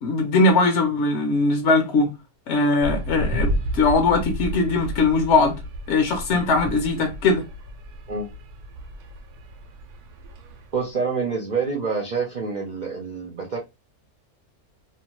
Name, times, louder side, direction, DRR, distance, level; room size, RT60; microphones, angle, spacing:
voice 1, 0.0-2.1 2.5-5.6 5.9-7.4, left 3 dB, 60° left, 0.8 m, -20 dB
sound 1, 2.8-10.9, equal, 90° right, 1.2 m, -32 dB
voice 2, 10.7-13.6, right 5 dB, 70° right, 0.4 m, -27 dB
2.8 x 2.2 x 2.9 m
omnidirectional pair, 1.6 m